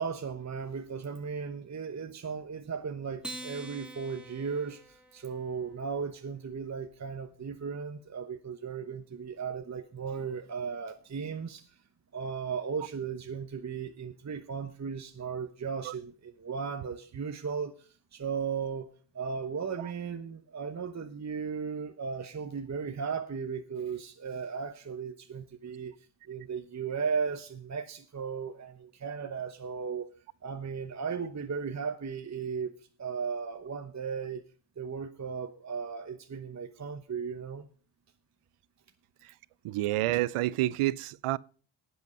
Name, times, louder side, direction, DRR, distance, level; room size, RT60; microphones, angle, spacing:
voice 1, 0.0-11.8 12.1-18.9 19.1-25.9 26.3-30.1 30.4-34.4 34.8-37.7, right 6 dB, 35° right, 1.0 m, -36 dB
Acoustic guitar, 3.2-5.9, right 1 dB, ahead, 2.0 m, -45 dB
voice 2, 39.6-41.4, right 16 dB, 90° right, 0.6 m, -28 dB
10.5 x 8.1 x 6.6 m
cardioid pair, 70°, 50 cm